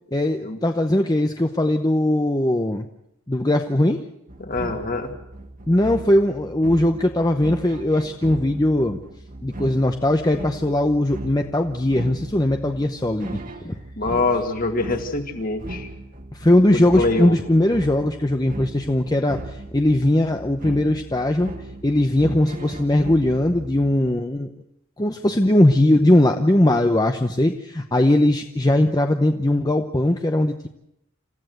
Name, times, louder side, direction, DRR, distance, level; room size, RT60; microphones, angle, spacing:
voice 1, 0.1-2.9 3.3-4.0 5.7-9.0 9.4-13.8 16.3-21.5 21.8-24.5 25.0-30.7, left 1 dB, 20° left, 6 dB, 0.8 m, -20 dB
sound 1, 4.3-24.1, right 2 dB, 40° right, 1.7 m, -38 dB
voice 2, 4.4-5.1 14.0-15.9 16.7-17.4, left 3 dB, 40° left, 5 dB, 2.3 m, -24 dB
28.0 x 15.0 x 7.9 m, 0.82 s
head